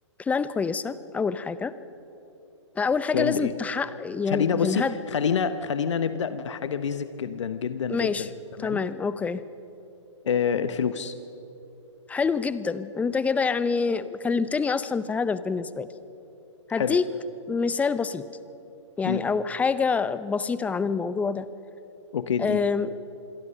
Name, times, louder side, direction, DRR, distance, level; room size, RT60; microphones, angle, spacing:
voice 1, 0.2-1.7 2.8-4.9 7.9-8.3 8.6-9.4 12.1-15.9 16.7-17.1 17.5-18.3 19.0-21.5 22.4-22.9, left 5 dB, 10° left, 15 dB, 0.6 m, -26 dB
voice 2, 3.1-3.5 4.3-8.3 8.6-8.8 10.2-11.1 16.8-17.0 19.0-19.3 22.1-22.6, left 7 dB, 65° left, 11 dB, 1.1 m, -27 dB
26.5 x 22.0 x 5.7 m, 2.9 s
hypercardioid pair, 125°, 16 cm